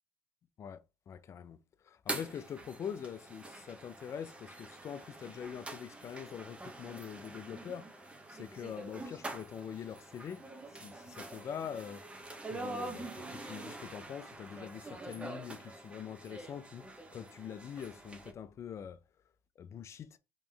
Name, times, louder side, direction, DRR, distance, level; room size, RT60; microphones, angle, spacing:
voice 1, 1.1-1.6 1.8-10.4 10.8-12.2 12.5-19.0 19.6-20.2, left 8 dB, 45° left, 0.5 m, -44 dB
sound 1, 2.1-18.3, right 2 dB, 15° right, 0.9 m, -46 dB
3.6 x 3.1 x 3.3 m
supercardioid pair, 80°, 7 cm